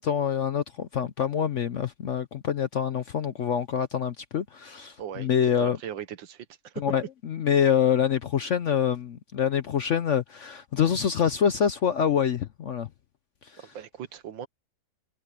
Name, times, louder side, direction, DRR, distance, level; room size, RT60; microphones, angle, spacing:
voice 1, 0.0-5.8 6.8-7.0 7.3-12.9, left 8 dB, 60° left, 0.7 m, -25 dB
voice 2, 5.0-5.3 5.6-6.8 13.6-14.5, right 9 dB, 80° right, 1.8 m, -39 dB
omnidirectional pair, 2.0 m